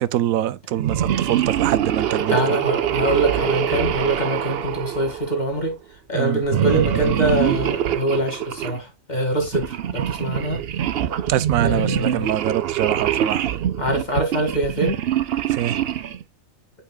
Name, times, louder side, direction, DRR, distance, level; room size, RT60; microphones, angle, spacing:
voice 1, 0.0-2.4 6.1-6.4 11.3-13.5 15.5-15.7, right 12 dB, 85° right, 1.0 m, -24 dB
sound 1, 0.8-5.6 6.5-8.8 9.4-16.2, right 10 dB, 55° right, 0.8 m, -24 dB
voice 2, 2.3-5.8 6.1-10.6 11.6-12.3 13.8-15.0, right 1 dB, 30° left, 2.4 m, -24 dB
8.5 x 5.6 x 2.3 m
omnidirectional pair, 1.4 m